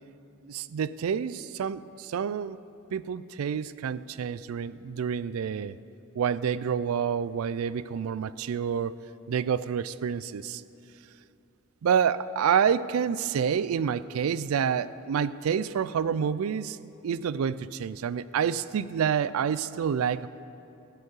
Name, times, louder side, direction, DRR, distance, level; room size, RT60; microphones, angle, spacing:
voice 1, 0.4-2.6 2.9-5.8 6.2-9.0 9.3-10.6 11.8-16.8 17.0-20.3, right 7 dB, 85° right, 17 dB, 0.4 m, -28 dB
14.5 x 5.3 x 9.4 m, 2.8 s
head